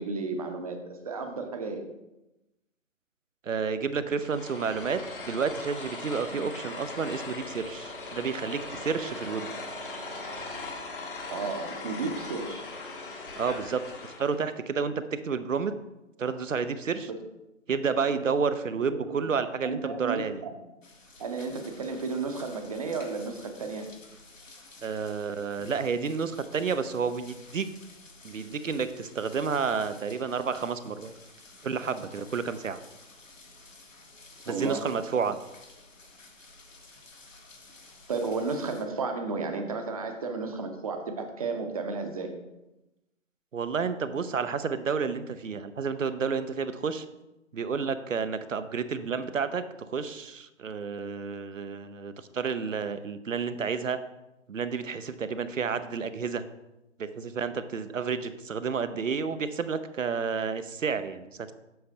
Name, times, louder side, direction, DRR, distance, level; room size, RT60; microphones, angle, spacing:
voice 1, 0.0-1.9 6.3-6.4 11.3-12.7 17.1-17.2 19.0-19.1 19.6-20.6 21.2-23.9 34.5-34.9 38.1-42.4, right 4 dB, 30° right, 5 dB, 0.7 m, -33 dB
voice 2, 3.5-9.5 13.4-15.7 16.2-17.1 17.7-20.4 24.8-27.7 28.2-31.1 31.6-32.8 34.5-35.4 43.5-47.0 47.5-54.0 54.5-56.4 57.0-61.5, right 5 dB, 80° right, 11 dB, 0.7 m, -30 dB
sound 1, 4.2-14.5, left 3 dB, 45° left, 1.1 m, -39 dB
sound 2, 20.8-38.8, left 2 dB, 75° left, 1.5 m, -52 dB
7.5 x 5.5 x 2.8 m, 0.96 s
figure-of-eight pair, 140°, 38 cm